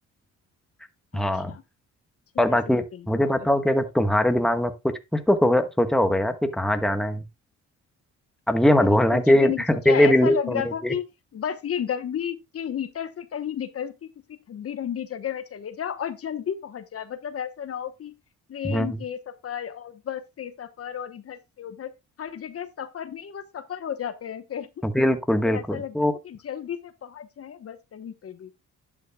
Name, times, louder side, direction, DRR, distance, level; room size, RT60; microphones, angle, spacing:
voice 1, 1.1-1.5 2.4-7.2 8.5-10.9 18.6-19.0 24.8-26.1, left 1 dB, ahead, 1.2 m, -21 dB
voice 2, 2.5-3.3 8.8-11.1 11.3-18.1 18.5-21.9 22.2-24.9 25.4-26.0 26.2-28.5, left 9 dB, 50° left, 1.0 m, -33 dB
11.0 x 8.5 x 2.2 m
cardioid pair, 90°, 30 cm